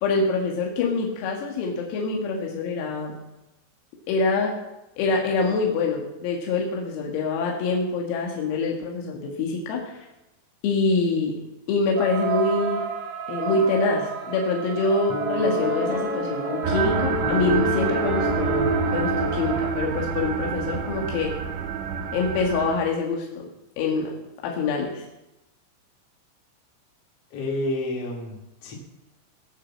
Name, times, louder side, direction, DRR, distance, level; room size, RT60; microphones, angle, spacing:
voice 1, 0.0-3.1 4.1-4.5 5.0-10.1 10.6-11.4 11.7-12.8 13.3-21.3 22.1-23.5 23.8-24.1 24.4-25.1, left 3 dB, 85° left, -1 dB, 4.5 m, -25 dB
sound 1, 12.0-19.7, right 8 dB, 90° right, 5.4 m, -31 dB
Piano, 15.1-20.4, left 3 dB, 25° left, 0.9 m, -30 dB
sound 2, 16.6-22.8, right 6 dB, 70° right, 3.3 m, -27 dB
voice 2, 27.3-28.7, left 1 dB, 40° left, -2 dB, 2.5 m, -29 dB
19.0 x 7.3 x 7.5 m, 0.95 s
omnidirectional pair, 6.0 m